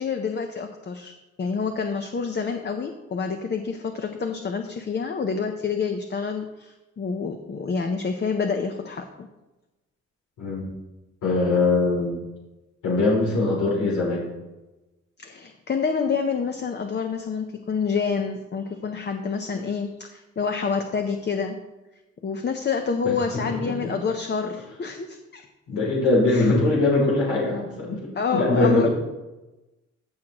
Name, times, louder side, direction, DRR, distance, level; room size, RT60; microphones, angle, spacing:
voice 1, 0.0-9.3 15.2-21.6 22.2-25.4 26.3-26.5 28.1-28.9, left 5 dB, 35° left, 5 dB, 0.7 m, -28 dB
voice 2, 11.2-12.2 12.8-14.3 23.0-23.1 23.5-23.9 25.7-28.9, left 2 dB, 90° left, -4 dB, 2.8 m, -22 dB
15.0 x 6.0 x 3.0 m, 1.0 s
cardioid pair, 110°, 30 cm